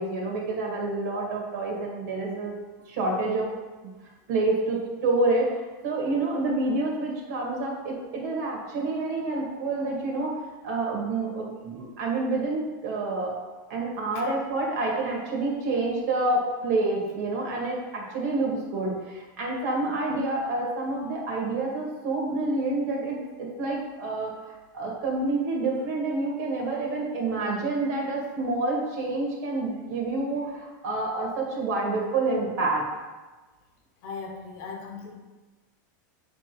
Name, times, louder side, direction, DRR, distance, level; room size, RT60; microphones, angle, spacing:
voice 1, 0.0-2.5 2.9-3.5 4.3-13.4 13.7-24.3 24.7-32.8, right 2 dB, 60° right, -1 dB, 2.0 m, -28 dB
voice 2, 34.0-35.1, left 5 dB, 40° left, 1 dB, 1.0 m, -38 dB
7.0 x 3.7 x 4.6 m, 1.2 s
supercardioid pair, 165°, 11 cm